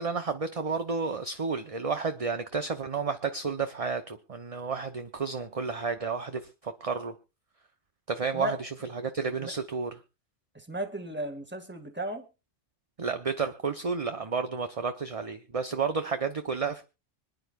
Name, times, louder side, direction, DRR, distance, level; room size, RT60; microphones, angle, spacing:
voice 1, 0.0-7.1 8.1-9.9 13.0-16.8, right 5 dB, 35° right, 7 dB, 0.9 m, -31 dB
voice 2, 8.3-8.9 9.3-9.5 10.5-12.3, equal, 10° right, 5 dB, 1.9 m, -36 dB
25.5 x 10.5 x 2.5 m, 0.29 s
omnidirectional pair, 1.2 m